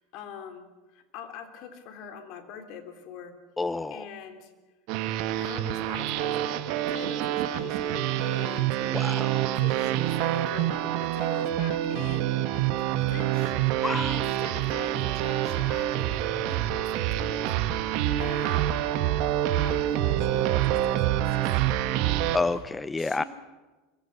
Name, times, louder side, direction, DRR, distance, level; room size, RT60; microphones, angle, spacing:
voice 1, 0.0-3.3 3.9-4.5 5.4-8.8 9.6-18.8 19.6-21.6 22.5-22.6 23.0-23.3, left 7 dB, 55° left, 6 dB, 3.5 m, -44 dB
voice 2, 3.6-4.0 8.8-9.5 13.8-14.2 22.3-23.2, left 3 dB, 15° left, 16 dB, 0.7 m, -29 dB
sound 1, 4.9-22.4, right 12 dB, 60° right, 1.5 m, -26 dB
26.0 x 23.5 x 6.0 m, 1.2 s
hypercardioid pair, 85°, 0 cm